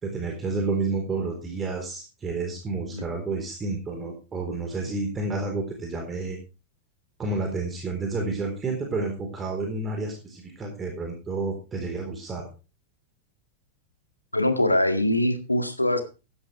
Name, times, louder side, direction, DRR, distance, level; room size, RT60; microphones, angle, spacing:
voice 1, 0.0-6.4 7.2-12.5, right 3 dB, 20° right, 2 dB, 3.9 m, -30 dB
voice 2, 14.3-16.0, left 1 dB, 85° left, 8 dB, 1.9 m, -23 dB
16.0 x 11.0 x 3.3 m, 0.31 s
figure-of-eight pair, 90°, 0 cm